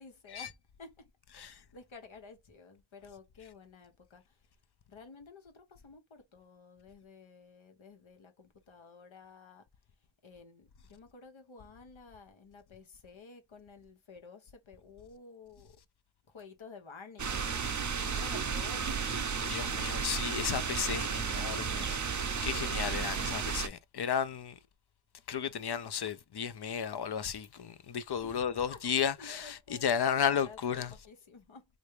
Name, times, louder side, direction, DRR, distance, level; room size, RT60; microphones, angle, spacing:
voice 1, 0.0-4.4 4.9-9.7 10.2-15.8 16.3-17.6 18.1-19.4 19.7-19.9 28.2-28.8 29.2-31.7, left 4 dB, 85° left, 0.9 m, -52 dB
sound 1, 17.2-23.7, right 6 dB, 40° right, 0.5 m, -33 dB
voice 2, 19.5-24.5 25.3-30.9, left 8 dB, 60° left, 0.5 m, -33 dB
3.3 x 2.6 x 3.1 m
wide cardioid pair, 65°, 46 cm